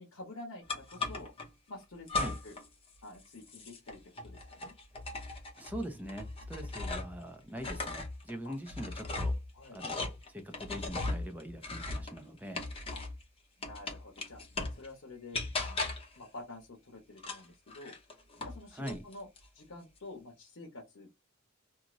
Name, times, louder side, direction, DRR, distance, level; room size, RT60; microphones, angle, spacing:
voice 1, 0.0-1.3 1.7-2.5 3.0-4.7 8.4-8.6 9.5-9.8 12.9-13.1 13.6-14.4 14.8-17.9 18.4-19.3 19.5-21.1, left 2 dB, 70° left, 0.8 m, -48 dB
sound 1, 0.7-1.5 2.1-2.7 2.9-7.2 7.5-13.2 13.6-14.9 15.3-16.2 17.2-18.6 18.9-19.5, left 3 dB, 30° left, 0.7 m, -38 dB
voice 2, 5.6-9.3 9.7-10.0 10.3-12.6 18.7-19.0, equal, 10° right, 0.6 m, -42 dB
2.6 x 2.5 x 3.0 m
head